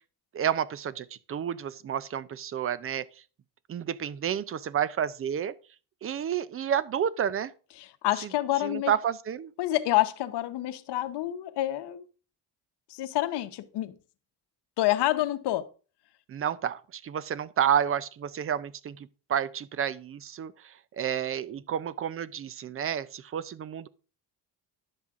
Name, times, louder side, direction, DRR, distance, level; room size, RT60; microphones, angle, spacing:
voice 1, 0.3-3.0 3.7-5.5 6.0-7.5 8.6-9.5 16.3-20.5 21.0-23.9, right 9 dB, 35° right, 0.4 m, -30 dB
voice 2, 7.8-8.9 9.6-12.0 12.9-14.0 14.8-15.7, left 15 dB, 75° left, 0.9 m, -28 dB
10.5 x 7.3 x 3.6 m
cardioid pair, 135°, 41 cm